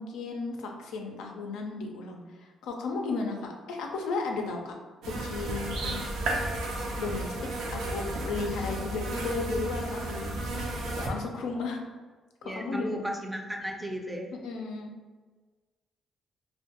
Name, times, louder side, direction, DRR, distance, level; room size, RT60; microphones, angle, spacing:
voice 1, 0.0-4.7 5.0-6.0 7.0-7.3 7.6-10.3 10.9-11.8 12.4-13.1 14.4-14.9, left 3 dB, 90° left, 2 dB, 0.4 m, -34 dB
sound 1, 5.0-11.1, right 2 dB, 80° right, 0.4 m, -33 dB
voice 2, 12.4-14.3, equal, 10° right, 2 dB, 0.4 m, -35 dB
2.2 x 2.1 x 2.8 m, 1.4 s
cardioid pair, 90°, 0 cm